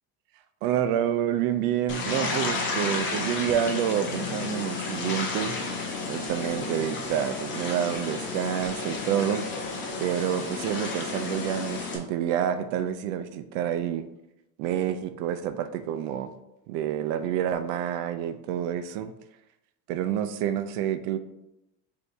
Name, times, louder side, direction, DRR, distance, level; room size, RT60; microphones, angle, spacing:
voice 1, 0.6-5.6 6.1-9.5 10.0-14.0 14.6-16.3 16.7-19.1 19.9-21.2, right 10 dB, 70° right, 11 dB, 0.5 m, -28 dB
sound 1, 1.9-12.0, left 3 dB, 30° left, 0.5 m, -32 dB
6.3 x 2.8 x 2.7 m, 0.89 s
cardioid pair, 175°, 39 cm